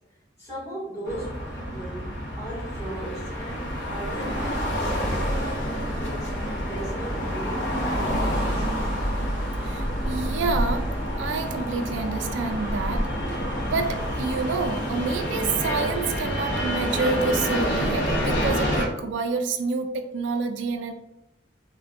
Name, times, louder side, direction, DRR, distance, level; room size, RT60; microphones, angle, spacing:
voice 1, 0.4-8.9, right 1 dB, 15° left, -10 dB, 1.4 m, -37 dB
sound 1, 1.1-18.9, equal, 70° left, 0.7 m, -28 dB
voice 2, 9.6-10.9 11.2-13.1 13.7-20.9, right 4 dB, 80° right, 6 dB, 0.3 m, -28 dB
3.4 x 2.2 x 2.4 m, 0.89 s
head